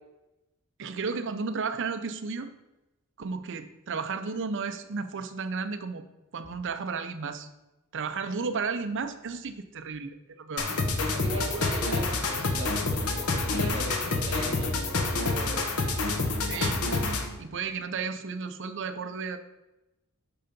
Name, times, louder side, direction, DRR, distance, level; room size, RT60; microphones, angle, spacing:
voice 1, 0.8-2.5 3.2-6.0 6.3-7.5 7.9-10.7 16.4-17.0 17.4-19.4, right 5 dB, 55° right, 9 dB, 0.6 m, -33 dB
sound 1, 10.6-17.4, left 3 dB, 75° left, 1.0 m, -28 dB
voice 2, 11.0-15.7 16.5-16.6, right 1 dB, 25° right, -4 dB, 2.4 m, -38 dB
10.0 x 3.8 x 5.2 m, 1.0 s
head